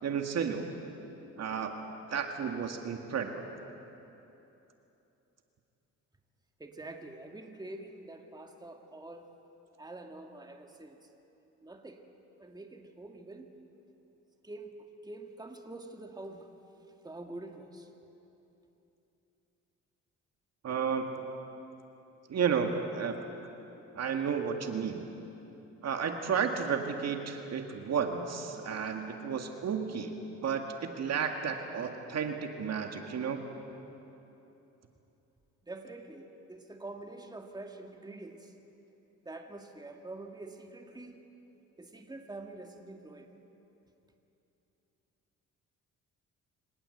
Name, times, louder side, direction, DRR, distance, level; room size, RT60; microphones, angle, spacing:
voice 1, 0.0-0.7 1.4-1.7 2.1-3.4 20.6-21.2 22.3-23.2 23.9-25.0 25.8-30.2 30.4-33.4, right 6 dB, 60° right, 4 dB, 2.0 m, -32 dB
voice 2, 6.6-9.3 9.8-11.0 11.6-12.0 12.4-13.5 14.4-14.7 15.0-16.5 17.0-17.9 35.6-38.5 39.2-41.2 41.8-43.3, right 2 dB, 15° right, 3 dB, 2.0 m, -46 dB
25.5 x 18.5 x 8.0 m, 3.0 s
cardioid pair, 90°, 30 cm